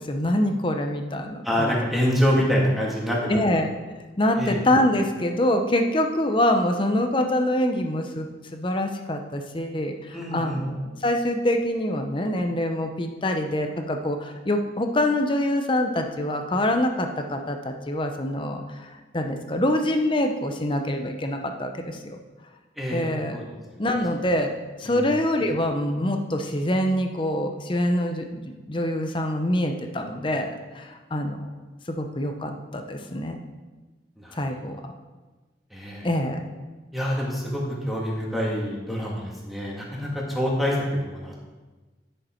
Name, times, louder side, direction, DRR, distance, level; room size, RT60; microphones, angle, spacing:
voice 1, 0.0-1.8 3.3-3.7 4.2-18.6 19.1-22.2 22.9-23.4 23.8-24.5 24.8-31.4 31.9-33.4 34.3-34.9 36.0-36.4, left 1 dB, 30° left, 5 dB, 0.7 m, -25 dB
voice 2, 1.4-3.5 4.4-4.6 10.1-10.6 22.8-23.4 24.8-25.1 34.2-34.4 35.7-36.1 36.9-41.5, equal, ahead, -4 dB, 1.9 m, -26 dB
10.5 x 6.6 x 4.4 m, 1.2 s
head